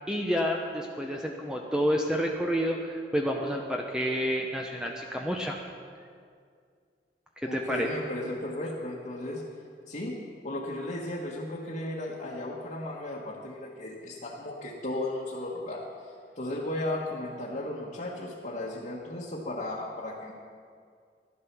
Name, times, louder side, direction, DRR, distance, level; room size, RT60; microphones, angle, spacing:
voice 1, 0.0-5.6 7.4-7.9, equal, 5° right, 0 dB, 0.7 m, -29 dB
voice 2, 7.4-9.4 9.9-10.2 10.4-15.8 16.4-20.3, left 1 dB, 45° left, -6 dB, 1.4 m, -35 dB
12.5 x 11.5 x 6.0 m, 2.2 s
head